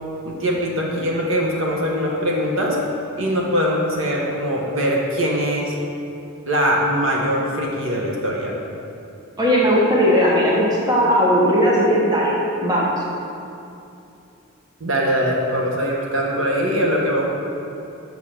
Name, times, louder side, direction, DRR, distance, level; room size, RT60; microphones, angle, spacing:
voice 1, 0.2-2.8 3.2-5.7 6.4-8.5 14.8-17.3, equal, 65° right, -2 dB, 1.2 m, -22 dB
voice 2, 9.4-13.0, equal, 20° right, -4 dB, 1.1 m, -17 dB
6.8 x 5.8 x 5.9 m, 2.7 s
head